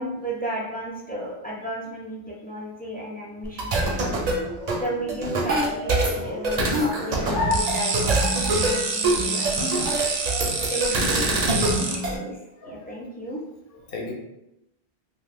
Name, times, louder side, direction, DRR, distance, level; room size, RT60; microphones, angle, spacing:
voice 1, 0.0-4.1 4.7-8.2 8.5-9.9 10.7-12.4 12.6-13.4, equal, 15° left, -4 dB, 0.3 m, -33 dB
sound 1, 3.4-8.4, left 2 dB, 85° left, 1.0 m, -34 dB
sound 2, 3.4-12.2, right 2 dB, 50° right, 0.5 m, -25 dB
sound 3, 7.5-12.0, right 4 dB, 85° right, 0.8 m, -27 dB
voice 2, 10.2-10.7 12.6-12.9 13.9-14.1, left 3 dB, 65° left, -1 dB, 0.9 m, -37 dB
2.6 x 2.3 x 3.4 m, 0.88 s
omnidirectional pair, 1.1 m